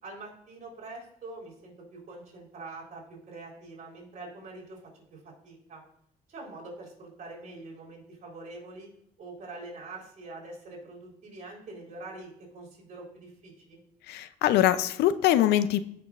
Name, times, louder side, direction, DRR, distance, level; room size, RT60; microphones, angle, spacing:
voice 1, 0.0-4.8 5.1-5.8 6.3-8.9 9.2-13.8, right 2 dB, 45° right, -2 dB, 3.8 m, -44 dB
voice 2, 14.1-15.8, left 12 dB, 75° left, 14 dB, 0.5 m, -23 dB
15.5 x 5.9 x 2.5 m, 0.73 s
cardioid pair, 110°, 17 cm